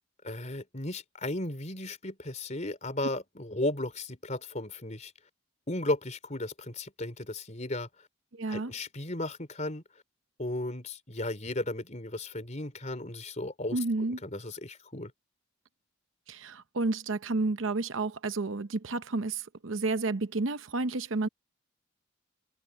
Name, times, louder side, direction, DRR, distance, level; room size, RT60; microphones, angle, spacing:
voice 1, 0.2-5.1 5.7-7.9 8.5-9.8 10.4-13.8 14.2-15.1, left 1 dB, 35° left, 3.7 m, -35 dB
voice 2, 8.3-8.7 13.7-14.2 16.3-21.3, right 3 dB, 75° right, 0.8 m, -31 dB
head